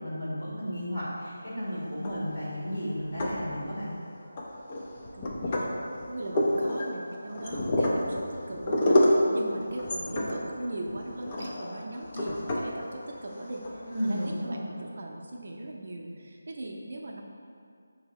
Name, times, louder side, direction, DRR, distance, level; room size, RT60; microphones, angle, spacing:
voice 1, 0.0-3.9 13.8-14.7, equal, 70° left, -9 dB, 1.5 m, -33 dB
sound 1, 1.9-2.5 3.0-3.9 4.4-14.3, left 1 dB, 25° left, 0.5 m, -29 dB
voice 2, 5.1-5.7 6.1-17.2, right 1 dB, 55° right, 0 dB, 0.6 m, -39 dB
5.7 x 2.7 x 3.1 m, 2.3 s
figure-of-eight pair, 165°, 0 cm